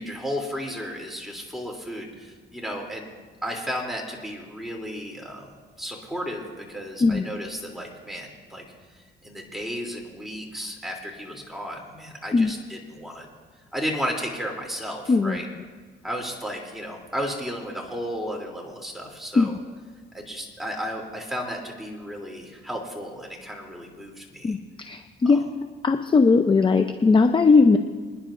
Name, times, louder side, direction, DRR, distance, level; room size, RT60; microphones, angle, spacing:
voice 1, 0.0-3.1 3.4-5.5 5.8-8.6 9.2-13.3 13.7-15.5 16.0-19.6 20.1-24.6 25.2-25.4, equal, ahead, -1 dB, 3.0 m, -33 dB
voice 2, 15.1-15.4 19.3-19.5 24.4-25.4 25.8-27.8, left 4 dB, 25° left, 7 dB, 0.6 m, -19 dB
27.5 x 10.5 x 2.6 m, 1.5 s
cardioid pair, 90°, 20 cm